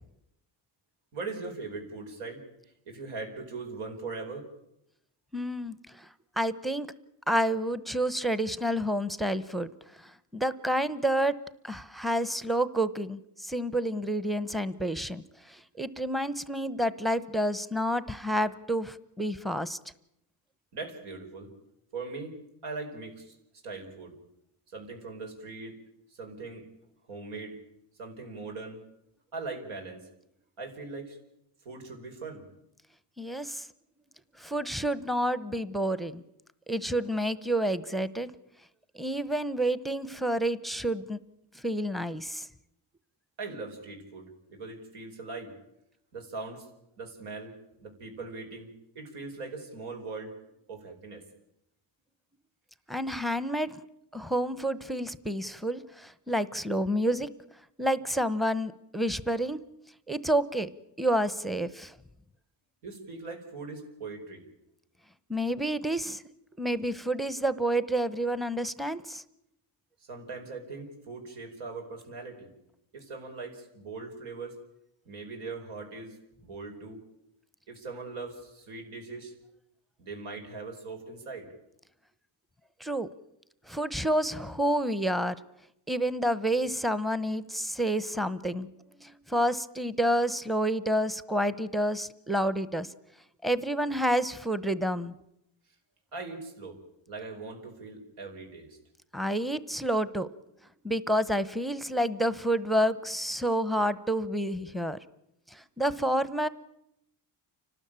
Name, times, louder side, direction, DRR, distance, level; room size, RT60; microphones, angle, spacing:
voice 1, 1.1-2.4 2.8-4.4 20.7-21.5 21.9-22.3 22.6-23.3 23.6-24.1 24.7-25.8 26.1-26.7 27.1-27.6 28.0-28.8 29.3-30.0 30.6-31.2 31.6-32.4 43.4-45.5 46.1-46.7 47.0-47.5 47.8-48.7 48.9-50.3 50.7-51.2 62.8-64.4 70.1-72.5 72.9-74.6 75.0-77.0 77.7-79.3 80.0-81.5 96.1-96.8 97.1-98.8, right 3 dB, 80° right, 2 dB, 5.0 m, -40 dB
voice 2, 5.3-6.1 6.4-6.9 7.3-9.7 10.0-11.4 11.6-19.8 33.2-33.7 34.4-36.2 36.7-38.3 38.9-41.2 41.5-42.5 52.9-53.8 54.1-57.3 57.8-59.6 60.1-60.7 61.0-61.9 65.3-66.2 66.6-69.2 82.8-83.1 83.7-85.3 85.9-88.7 89.0-92.9 93.4-95.1 99.1-100.3 100.8-105.0 105.5-106.5, right 1 dB, ahead, 16 dB, 0.8 m, -29 dB
29.5 x 12.5 x 8.8 m, 0.82 s
cardioid pair, 100°, 50 cm